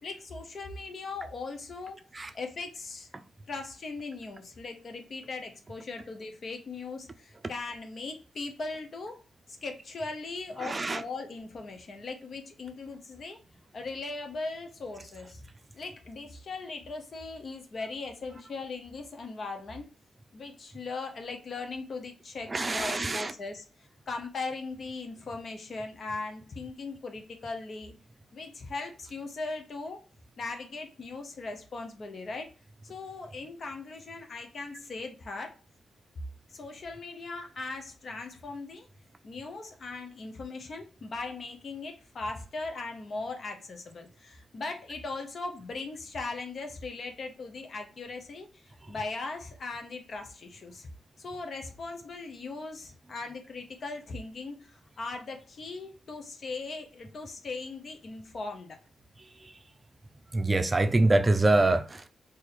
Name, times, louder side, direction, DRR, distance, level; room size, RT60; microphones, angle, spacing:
voice 1, 0.0-2.0 2.3-3.1 3.5-9.2 9.5-13.4 13.7-15.5 15.7-19.9 20.3-23.7 24.1-27.9 28.3-30.0 30.4-32.5 32.8-35.6 36.5-38.9 39.2-50.9 51.2-58.8, left 3 dB, 55° left, 0.8 m, -39 dB
voice 2, 10.6-11.0 22.5-23.3 60.3-62.1, right 2 dB, 30° right, 0.4 m, -25 dB
2.6 x 2.6 x 4.1 m
supercardioid pair, 50°, 0 cm